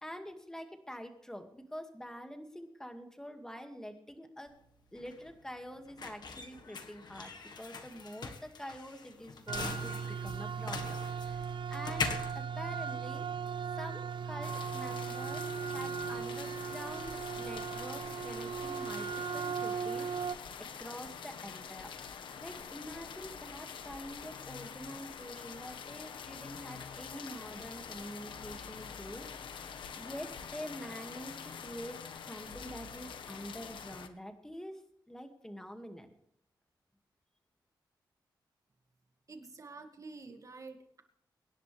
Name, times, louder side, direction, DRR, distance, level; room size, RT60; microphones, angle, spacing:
voice 1, 0.0-4.5 4.9-12.1 12.3-13.3 13.7-21.9 22.4-29.6 29.9-32.0 32.3-34.8 35.1-36.1, equal, 5° left, 5 dB, 2.2 m, -46 dB
sound 1, 4.5-13.5, left 5 dB, 60° left, 1.6 m, -42 dB
sound 2, 9.5-20.4, right 6 dB, 75° right, 0.5 m, -38 dB
sound 3, 14.4-34.1, left 6 dB, 85° left, 1.2 m, -46 dB
voice 2, 39.3-41.0, right 3 dB, 40° right, 5 dB, 2.2 m, -48 dB
24.0 x 10.5 x 3.5 m, 0.71 s
cardioid pair, 85°, 8 cm